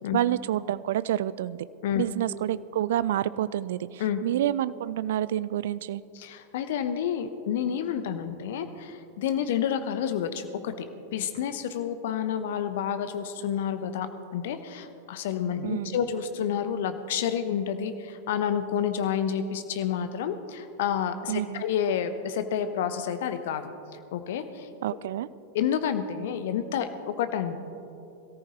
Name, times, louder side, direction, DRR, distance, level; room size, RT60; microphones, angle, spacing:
voice 1, 0.1-1.6 2.0-6.0 15.6-16.0 21.3-21.6 24.8-25.3, right 12 dB, 55° right, 17 dB, 0.4 m, -28 dB
voice 2, 6.1-10.9 11.1-23.7 24.1-24.7 25.5-27.5, left 8 dB, 55° left, 10 dB, 0.9 m, -29 dB
22.0 x 14.0 x 3.1 m, 2.8 s
figure-of-eight pair, 90°, 0 cm